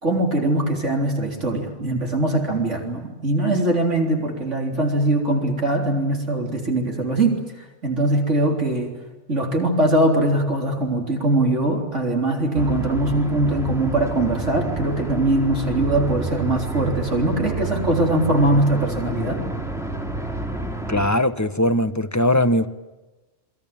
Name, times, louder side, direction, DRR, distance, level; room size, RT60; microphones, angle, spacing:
voice 1, 0.0-7.4 7.8-9.0 9.3-19.4, right 1 dB, 70° right, 4.1 m, -21 dB
sound 1, 12.5-21.1, right 2 dB, ahead, 3.0 m, -29 dB
voice 2, 20.9-22.7, left 1 dB, 15° left, 1.0 m, -20 dB
28.5 x 22.0 x 9.0 m
omnidirectional pair, 1.3 m